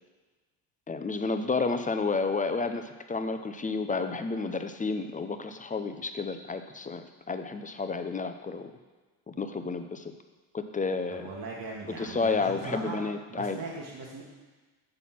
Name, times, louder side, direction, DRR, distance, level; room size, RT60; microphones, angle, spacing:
voice 1, 0.9-8.7 9.3-10.1 10.5-11.3 12.0-13.6, left 4 dB, 15° left, 8 dB, 0.5 m, -31 dB
voice 2, 11.1-13.0 13.3-14.2, right 3 dB, 45° right, -2 dB, 1.4 m, -39 dB
7.8 x 4.1 x 5.7 m, 1.3 s
supercardioid pair, 70°, 49 cm